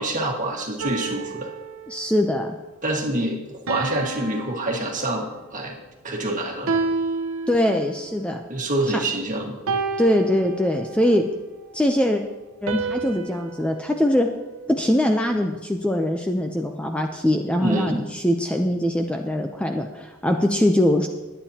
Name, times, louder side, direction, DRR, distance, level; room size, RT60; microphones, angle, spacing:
voice 1, 0.0-1.5 2.8-5.8 6.0-6.7 8.5-9.6 17.5-18.0, right 1 dB, 40° right, 0 dB, 1.7 m, -26 dB
sound 1, 0.8-2.3 3.7-5.5 6.7-8.1 9.7-11.1 12.7-14.9, right 4 dB, 80° right, 0.9 m, -30 dB
voice 2, 1.9-2.5 7.5-8.4 8.9-9.0 10.0-11.3 11.7-12.2 12.6-14.3 14.7-21.1, left 1 dB, 5° left, 4 dB, 0.5 m, -22 dB
21.0 x 9.0 x 2.8 m, 1.1 s
head